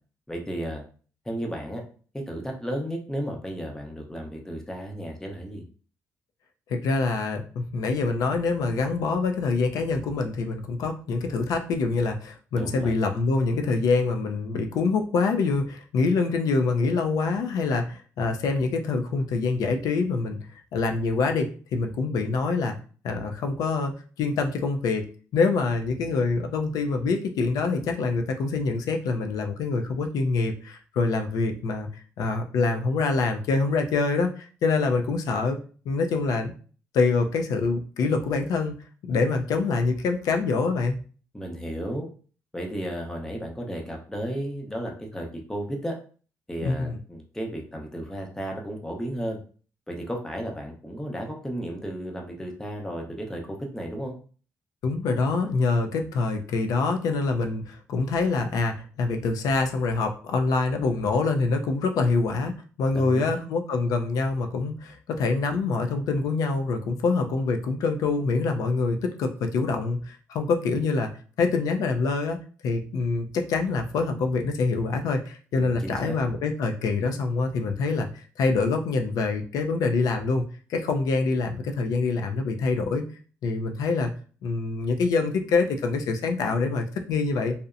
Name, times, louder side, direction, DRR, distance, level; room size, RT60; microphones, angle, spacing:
voice 1, 0.3-0.8 1.2-1.8 2.1-5.6 12.5-13.0 41.3-42.1 42.5-45.9 46.5-49.4 49.9-54.1 62.9-63.5 75.6-76.2, equal, 10° left, 1 dB, 0.6 m, -33 dB
voice 2, 6.7-20.4 20.7-22.8 23.0-25.0 25.3-31.9 32.2-35.6 35.9-36.5 36.9-38.7 39.0-41.0 46.6-47.0 54.8-71.1 71.4-80.4 80.7-83.0 83.4-84.1 84.4-87.5, left 4 dB, 80° left, 5 dB, 0.4 m, -25 dB
2.7 x 2.0 x 2.4 m, 0.41 s
cardioid pair, 90°, 6 cm